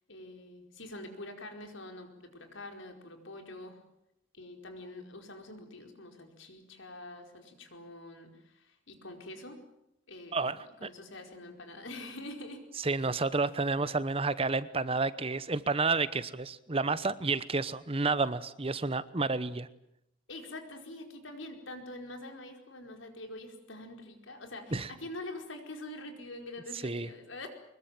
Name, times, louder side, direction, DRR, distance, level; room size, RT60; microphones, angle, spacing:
voice 1, 0.1-3.8 4.3-9.6 10.1-10.4 10.8-12.7 20.3-27.5, left 1 dB, 80° left, 5 dB, 4.8 m, -45 dB
voice 2, 10.3-10.9 12.8-19.7 24.7-24.9 26.8-27.1, right 3 dB, 30° right, 16 dB, 0.9 m, -30 dB
24.5 x 21.5 x 9.1 m, 0.79 s
head